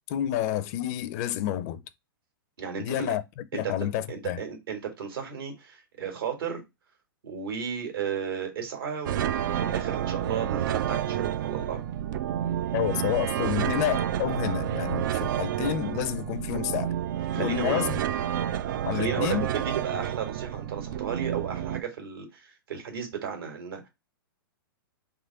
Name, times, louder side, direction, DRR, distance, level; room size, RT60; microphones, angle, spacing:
voice 1, 0.1-1.8 2.8-4.4 12.7-16.9 17.3-18.0 18.8-19.5, left 12 dB, 45° left, 0.5 m, -29 dB
voice 2, 2.6-3.2 3.5-3.7 4.1-6.6 7.2-11.8 17.3-17.8 18.9-23.9, right 7 dB, 75° right, 2.0 m, -34 dB
sound 1, 9.1-21.8, right 11 dB, 60° right, 0.4 m, -30 dB
3.7 x 3.1 x 4.6 m
hypercardioid pair, 130°, 12 cm